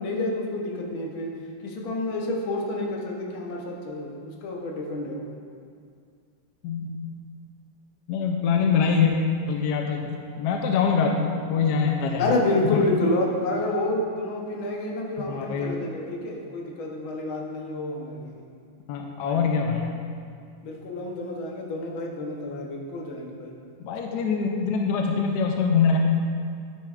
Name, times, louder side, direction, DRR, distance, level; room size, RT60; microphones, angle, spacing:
voice 1, 0.0-1.4 1.6-5.3 12.2-18.4 20.6-23.6, left 2 dB, 90° left, 0 dB, 1.8 m, -29 dB
voice 2, 6.6-6.9 8.1-9.1 9.5-10.1 10.4-12.3 12.6-12.8 15.2-15.7 18.9-20.0 23.8-26.0, left 6 dB, 75° left, 2 dB, 1.0 m, -24 dB
9.9 x 7.2 x 2.4 m, 2.2 s
omnidirectional pair, 2.2 m